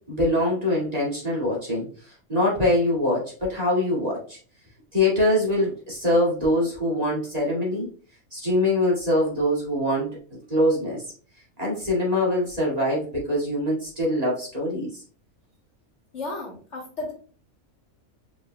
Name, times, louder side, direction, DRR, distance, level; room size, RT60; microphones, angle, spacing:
voice 1, 0.1-4.4 4.9-7.9 8.3-10.2 10.5-11.1 11.6-14.9, left 1 dB, 25° right, -6 dB, 2.2 m, -23 dB
voice 2, 16.1-17.1, left 2 dB, 55° left, -2 dB, 1.6 m, -34 dB
5.0 x 4.9 x 2.2 m, 0.41 s
omnidirectional pair, 1.5 m